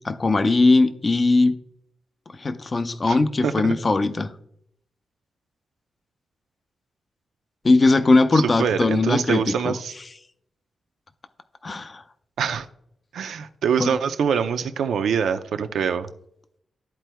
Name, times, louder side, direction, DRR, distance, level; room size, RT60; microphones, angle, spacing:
voice 1, 0.0-1.6 2.4-4.3 7.6-9.8 11.6-12.0 13.8-13.9, left 3 dB, 25° left, 10 dB, 0.4 m, -19 dB
voice 2, 3.4-3.7 8.3-9.9 12.4-12.7 13.1-16.1, right 7 dB, 90° right, 9 dB, 0.5 m, -24 dB
13.0 x 4.5 x 2.2 m, 0.73 s
wide cardioid pair, 180°, 0 cm